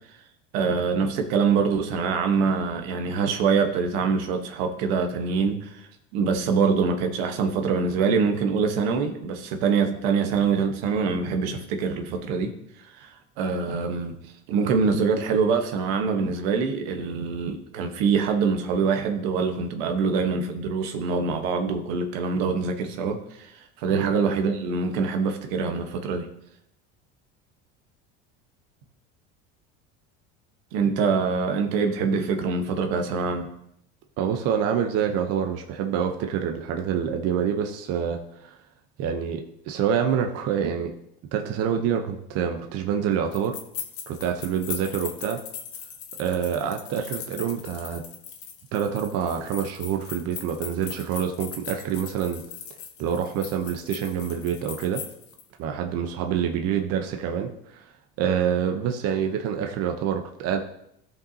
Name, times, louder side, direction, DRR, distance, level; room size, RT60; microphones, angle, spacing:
voice 1, 0.5-12.5 12.8-14.2 14.5-26.3 30.7-33.5, right 5 dB, 85° right, 5 dB, 1.2 m, -24 dB
voice 2, 34.2-38.6 39.0-40.9 41.3-43.5 44.1-45.4 46.2-48.0 48.7-52.4 53.0-55.0 55.6-57.9 58.2-60.6, right 8 dB, 55° right, 4 dB, 0.8 m, -26 dB
sound 1, 43.3-55.4, left 8 dB, 50° left, 1.3 m, -40 dB
15.0 x 5.3 x 2.8 m, 0.77 s
supercardioid pair, 125°, 29 cm